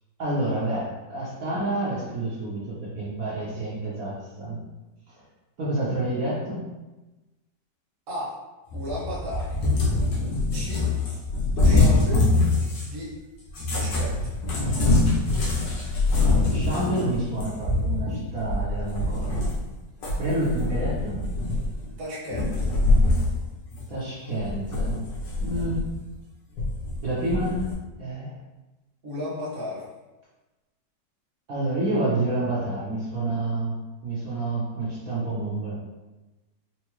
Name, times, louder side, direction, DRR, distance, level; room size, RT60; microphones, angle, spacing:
voice 1, 0.2-4.6 5.1-5.2 5.6-6.7 16.3-19.5 20.1-21.3 23.9-25.0 25.4-25.9 27.0-27.7 28.0-28.3 31.5-35.7, right 1 dB, 60° right, -8 dB, 1.2 m, -28 dB
voice 2, 8.1-8.4 8.7-9.6 10.5-10.9 11.4-12.3 12.8-13.1 13.7-14.3 22.0-22.7 29.0-29.9, left 1 dB, 40° right, -7 dB, 1.1 m, -34 dB
Cat, 8.7-13.0 13.5-19.7 20.0-21.9 22.3-23.4 23.7-23.8 24.4-26.0 26.6-27.7, left 2 dB, 90° left, 1.6 m, -24 dB
4.5 x 2.2 x 3.0 m, 1.1 s
omnidirectional pair, 1.9 m